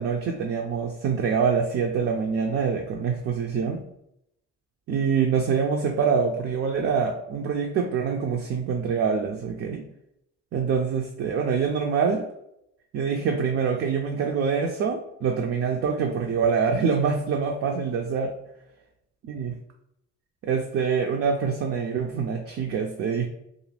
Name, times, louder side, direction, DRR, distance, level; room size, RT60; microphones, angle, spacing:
voice 1, 0.0-3.8 4.9-9.9 10.5-12.3 12.9-18.3 19.3-19.6 20.4-23.3, right 6 dB, 50° right, 1 dB, 0.4 m, -25 dB
2.5 x 2.3 x 3.2 m, 0.78 s
cardioid pair, 90°, 30 cm